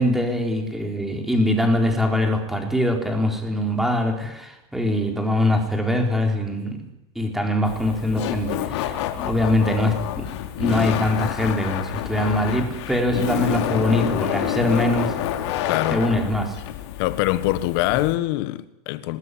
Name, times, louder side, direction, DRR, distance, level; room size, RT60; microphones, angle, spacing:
voice 1, 0.0-6.8 7.2-10.3 10.6-15.2 15.9-16.6, left 1 dB, ahead, 4.1 m, -23 dB
Laughter, 7.6-18.2, left 11 dB, 70° left, 3.6 m, -28 dB
voice 2, 15.6-16.0 17.0-19.2, left 16 dB, 55° left, 1.4 m, -24 dB
25.5 x 19.5 x 10.0 m
supercardioid pair, 170°, 15 cm